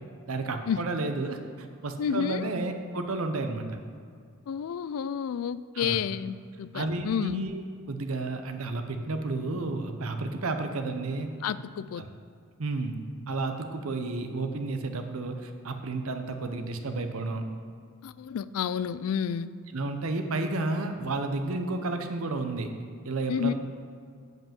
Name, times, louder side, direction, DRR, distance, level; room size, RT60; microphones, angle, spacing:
voice 1, 0.3-3.8 5.7-6.0 6.7-7.6 7.9-11.3 12.0-12.1 12.6-13.0 13.3-17.4 19.7-22.7 23.0-23.5, right 2 dB, 80° right, 6 dB, 0.8 m, -31 dB
voice 2, 2.0-2.5 4.5-7.4 11.4-12.0 18.0-19.5 23.3-23.5, left 8 dB, 85° left, 16 dB, 0.3 m, -30 dB
7.3 x 5.4 x 7.4 m, 2.2 s
head